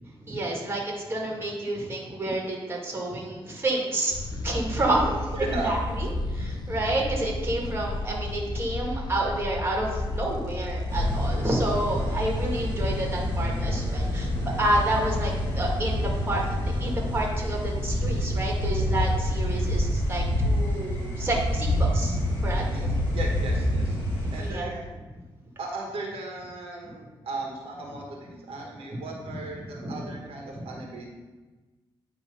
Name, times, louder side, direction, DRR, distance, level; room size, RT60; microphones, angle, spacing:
voice 1, 0.3-14.3 14.6-22.7 24.2-24.7 29.8-30.2 30.5-30.6, right 1 dB, 25° right, -1 dB, 1.8 m, -29 dB
sound 1, 4.1-22.2, left 1 dB, 45° left, 0.6 m, -33 dB
voice 2, 5.1-5.7 22.7-24.0 24.3-24.9 25.6-31.1, right 3 dB, 85° right, 0 dB, 1.3 m, -36 dB
sound 2, 10.9-24.5, left 1 dB, 25° left, 2.3 m, -28 dB
8.9 x 3.0 x 5.4 m, 1.2 s
cardioid pair, 95°, 10 cm